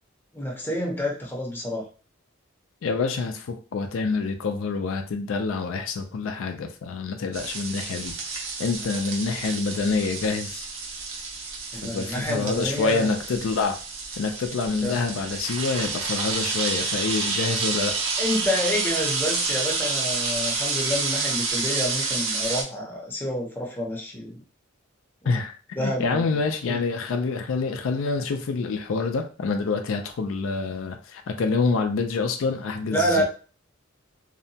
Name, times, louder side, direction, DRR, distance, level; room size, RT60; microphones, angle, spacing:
voice 1, 0.3-1.8 11.7-13.1 14.8-15.0 18.2-24.4 25.2-25.4 25.8-26.2 26.7-26.8 32.9-33.2, left 1 dB, 10° left, -1 dB, 0.6 m, -28 dB
voice 2, 2.8-8.1 8.6-10.7 11.7-13.8 14.2-18.0 25.3-33.2, left 4 dB, 70° left, 5 dB, 0.4 m, -27 dB
sound 1, 7.3-22.6, right 4 dB, 90° right, 0.7 m, -29 dB
2.7 x 2.1 x 2.7 m, 0.37 s
head